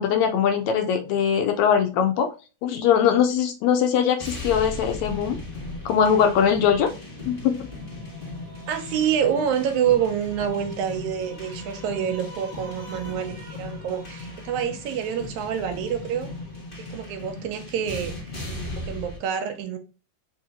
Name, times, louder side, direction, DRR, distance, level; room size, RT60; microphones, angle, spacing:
voice 1, 0.0-2.3 2.6-5.4 5.9-6.9 7.3-7.6, left 8 dB, 80° left, 1.7 m, -21 dB
sound 1, 4.2-19.2, left 2 dB, 50° left, 0.6 m, -37 dB
voice 2, 8.7-16.3 16.8-18.2 18.7-19.8, right 8 dB, 80° right, 2.0 m, -27 dB
4.6 x 3.0 x 3.4 m
omnidirectional pair, 3.4 m